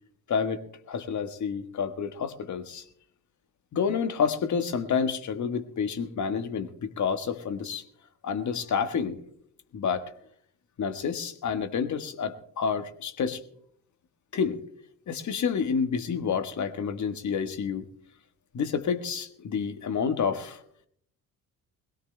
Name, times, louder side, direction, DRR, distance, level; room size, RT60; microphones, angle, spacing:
voice 1, 0.3-0.6 0.9-2.8 3.7-7.8 8.2-9.2 9.7-10.0 10.8-13.4 14.3-14.6 15.1-17.8 18.5-20.6, left 6 dB, 40° left, 9 dB, 1.4 m, -29 dB
22.0 x 17.0 x 2.2 m, 0.64 s
figure-of-eight pair, 50°, 43 cm